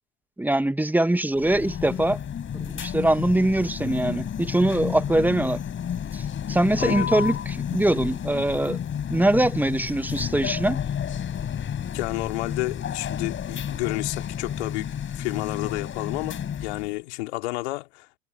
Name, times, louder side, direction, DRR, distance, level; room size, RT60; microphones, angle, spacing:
voice 1, 0.4-2.2 2.5-5.6 6.1-8.8 9.1-10.8, right 1 dB, 5° right, 1.8 m, -23 dB
sound 1, 1.4-17.0, left 8 dB, 35° left, 5.4 m, -31 dB
voice 2, 6.8-7.1 11.9-18.1, left 22 dB, 65° left, 2.8 m, -31 dB
figure-of-eight pair, 75°, 36 cm